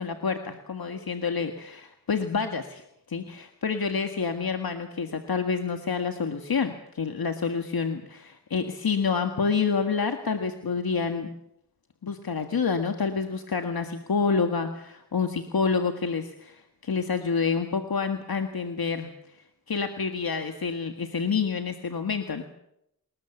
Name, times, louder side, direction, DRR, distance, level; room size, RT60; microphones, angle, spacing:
voice 1, 0.0-11.3 12.0-19.1 19.7-22.4, left 5 dB, 65° left, 6 dB, 1.8 m, -28 dB
28.5 x 20.5 x 7.2 m, 0.80 s
wide cardioid pair, 95°, 38 cm